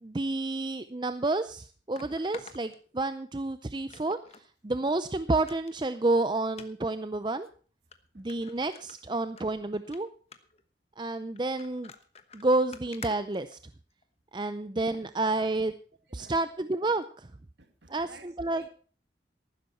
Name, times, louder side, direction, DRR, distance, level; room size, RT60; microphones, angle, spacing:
voice 1, 0.0-4.2 4.6-7.5 8.2-10.1 11.0-11.9 12.3-13.6 14.3-15.7 16.1-17.3 17.9-18.7, right 2 dB, 25° right, 0.5 m, -30 dB
sound 1, 0.9-1.0 1.9-3.4 3.9-4.5 4.8-4.9 5.3-5.8 6.5-6.7 7.4-7.5 7.9-8.0 8.3-9.4 9.8-10.0 10.3-10.6 11.4-14.0 14.8-15.0 15.5-15.6, left 5 dB, 35° left, 1.2 m, -49 dB
voice 2, 14.6-15.1 16.1-16.5 17.6-18.7, right 2 dB, 85° right, 2.1 m, -54 dB
14.5 x 12.5 x 4.4 m
head